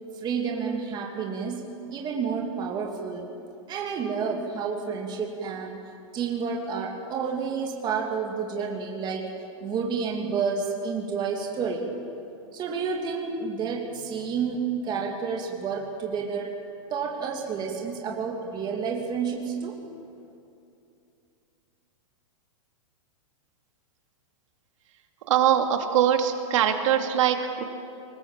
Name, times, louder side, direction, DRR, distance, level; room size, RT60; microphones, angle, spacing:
voice 1, 0.1-1.6 1.9-3.2 3.7-5.8 6.1-9.3 9.6-11.9 12.5-16.5 16.9-19.8, right 5 dB, 25° right, 0 dB, 2.6 m, -30 dB
voice 2, 25.3-27.6, right 9 dB, 65° right, 4 dB, 2.6 m, -22 dB
23.5 x 19.5 x 7.4 m, 2.6 s
hypercardioid pair, 140°, 17 cm